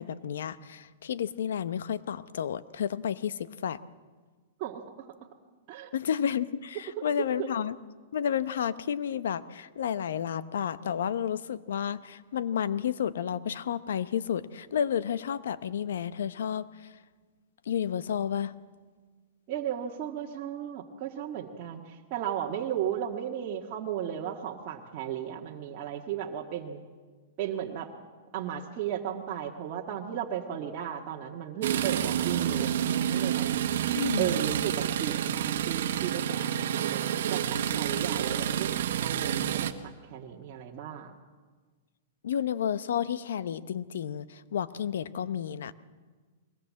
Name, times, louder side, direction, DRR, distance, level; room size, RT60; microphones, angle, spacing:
voice 1, 0.0-3.8 5.9-7.8 8.1-16.7 17.7-18.5 34.0-34.4 38.3-38.4 42.2-45.7, left 8 dB, 80° left, 15 dB, 0.9 m, -31 dB
voice 2, 19.5-26.8 27.4-27.9 28.3-33.6 34.2-41.1, right 10 dB, 40° right, -2 dB, 1.7 m, -35 dB
sound 1, 31.6-39.7, right 10 dB, 70° right, 1.3 m, -29 dB
22.0 x 18.5 x 7.6 m, 1.4 s
hypercardioid pair, 150°, 0 cm